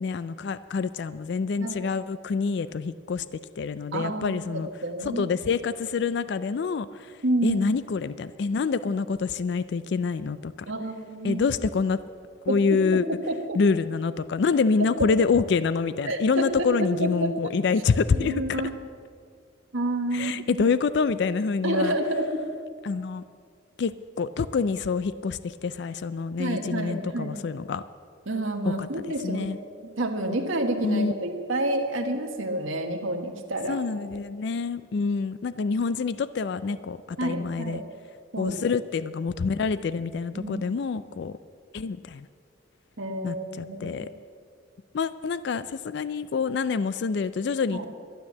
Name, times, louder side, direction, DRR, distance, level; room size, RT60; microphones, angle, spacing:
voice 1, 0.0-4.7 5.0-10.5 11.2-12.0 12.4-13.1 13.5-18.6 20.1-21.9 22.8-23.2 23.8-27.8 28.8-28.9 29.2-29.6 30.8-31.2 33.7-37.8 38.4-41.4 41.7-42.3 43.2-44.1 44.9-47.8, left 5 dB, 55° left, 14 dB, 0.3 m, -26 dB
voice 2, 3.9-5.3 7.2-7.6 10.7-11.4 12.5-13.6 15.0-15.1 16.1-17.3 18.1-18.7 19.7-20.6 21.6-22.4 26.4-27.3 28.3-29.5 29.8-33.8 37.2-37.8 38.3-38.6 40.3-40.6 43.0-44.1 47.7-47.9, right 1 dB, 75° right, 3 dB, 1.4 m, -29 dB
12.5 x 10.5 x 7.4 m, 2.2 s
head